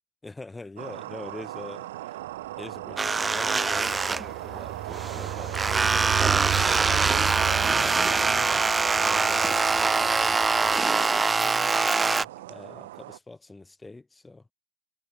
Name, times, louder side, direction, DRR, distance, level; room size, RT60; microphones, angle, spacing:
voice 1, 0.2-2.2 2.5-6.3 7.2-10.8 11.2-14.5, left 2 dB, 10° left, 3.0 m, -44 dB
sound 1, 0.8-13.2, right 16 dB, 55° right, 1.7 m, -39 dB
Train, 2.8-11.3, right 14 dB, 35° right, 1.4 m, -34 dB
sound 2, 3.0-4.6 4.9-12.2, right 4 dB, 10° right, 0.5 m, -24 dB
figure-of-eight pair, 90°, 0 cm